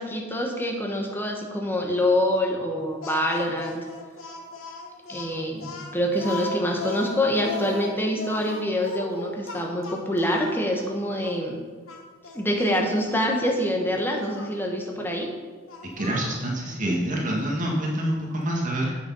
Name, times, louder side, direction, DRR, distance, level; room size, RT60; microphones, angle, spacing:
voice 1, 0.0-3.8 5.1-11.6 12.3-15.3, equal, 10° left, 0 dB, 1.4 m, -25 dB
Speech, 3.0-10.6 11.2-11.4 11.9-12.8 14.2-14.5 15.7-16.4, left 3 dB, 80° left, 1.3 m, -37 dB
voice 2, 16.0-19.0, right 1 dB, 40° right, -2 dB, 1.7 m, -26 dB
8.3 x 6.4 x 5.6 m, 1.4 s
head